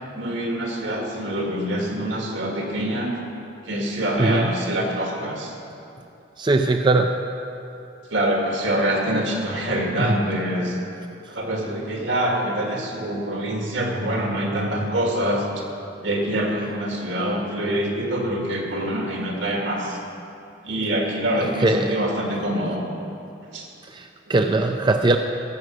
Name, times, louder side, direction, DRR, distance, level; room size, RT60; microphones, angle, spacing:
voice 1, 0.1-3.1 3.7-5.5 8.1-10.8 11.3-15.4 16.0-20.0 20.6-22.9 23.5-23.7, right 1 dB, 75° right, 0 dB, 2.1 m, -25 dB
voice 2, 6.4-7.2 10.0-10.2 21.4-22.0 23.9-25.2, right 2 dB, 25° right, 5 dB, 0.4 m, -20 dB
15.5 x 7.5 x 6.3 m, 2.7 s
head